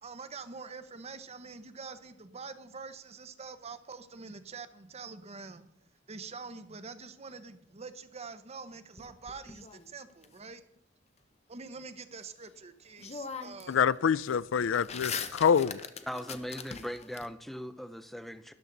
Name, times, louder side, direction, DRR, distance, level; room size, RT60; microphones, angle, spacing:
voice 1, 0.0-5.7 6.1-10.6 11.5-13.8, right 4 dB, 35° right, 0.9 m, -45 dB
sound 1, 9.0-10.3 12.5-12.6 13.0-13.8 14.1-17.3, left 6 dB, 35° left, 0.8 m, -41 dB
voice 2, 13.7-15.8, left 7 dB, 70° left, 0.4 m, -26 dB
voice 3, 16.1-18.5, equal, ahead, 0.6 m, -39 dB
13.0 x 11.0 x 3.9 m
head